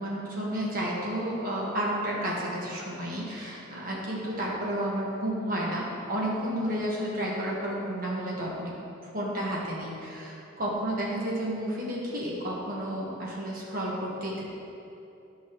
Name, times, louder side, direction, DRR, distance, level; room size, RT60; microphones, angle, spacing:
voice 1, 0.0-8.7 9.0-14.4, right 1 dB, 45° right, -4 dB, 1.5 m, -31 dB
13.0 x 5.6 x 3.1 m, 2.8 s
head